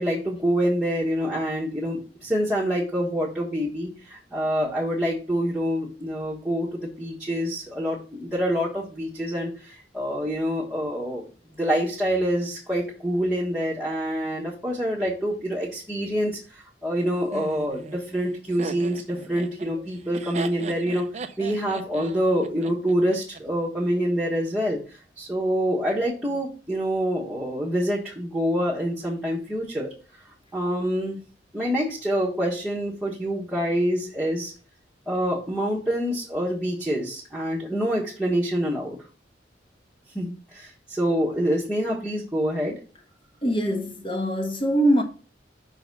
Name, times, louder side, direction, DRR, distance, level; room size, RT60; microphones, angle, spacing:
voice 1, 0.0-11.3 11.6-21.1 21.4-29.9 30.5-31.2 31.5-34.5 35.1-39.0 40.1-42.8, equal, 5° right, 1.3 m, -26 dB
Laughter, 17.3-23.4, right 3 dB, 35° right, 0.5 m, -38 dB
voice 2, 43.4-45.0, right 1 dB, 30° left, 1.4 m, -23 dB
5.7 x 4.0 x 5.3 m
head